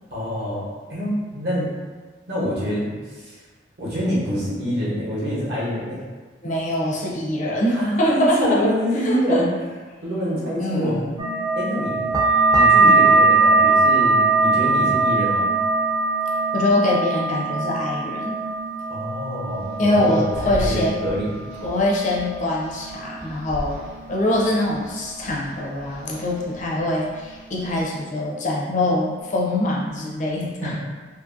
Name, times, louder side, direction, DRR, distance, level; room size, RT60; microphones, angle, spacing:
voice 1, 0.1-1.7 2.3-3.4 3.8-6.0 7.7-9.5 10.0-11.0 11.6-12.0 12.5-15.5 18.9-21.3 30.6-30.7, equal, 60° right, -7 dB, 0.9 m, -26 dB
voice 2, 6.4-8.7 9.0-9.5 10.6-11.2 16.5-18.4 19.8-21.1 21.6-23.8 24.1-30.7, left 1 dB, 40° left, -3 dB, 0.4 m, -23 dB
sound 1, 11.2-26.4 26.6-27.4 27.7-28.4 28.8-29.2, right 3 dB, 20° right, 0.4 m, -22 dB
sound 2, 19.5-27.8, equal, 90° right, 1.0 m, -38 dB
2.6 x 2.5 x 2.5 m, 1.4 s
head